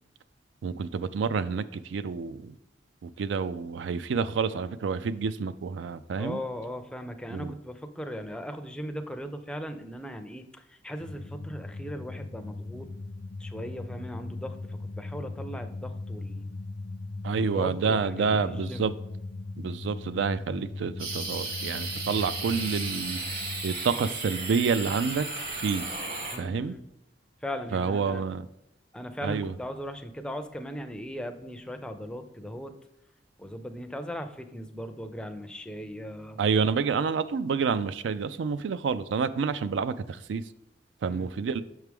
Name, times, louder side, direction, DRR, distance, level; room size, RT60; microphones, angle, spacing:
voice 1, 0.6-2.5 3.0-6.4 7.3-7.5 17.2-18.9 19.6-23.2 23.6-25.3 25.5-25.8 26.4-26.7 27.7-28.5 29.2-29.5 36.4-40.4 41.0-41.6, right 5 dB, 80° right, 14 dB, 0.4 m, -28 dB
voice 2, 6.2-12.9 13.4-16.5 17.5-19.0 26.3-26.9 27.4-28.2 28.9-32.7 33.4-36.4 41.0-41.3, equal, 5° left, 7 dB, 0.4 m, -38 dB
sound 1, 11.0-23.7, left 3 dB, 60° left, 0.4 m, -39 dB
sound 2, 21.0-26.4, right 3 dB, 55° right, 1.6 m, -35 dB
6.6 x 4.7 x 3.5 m, 0.86 s
head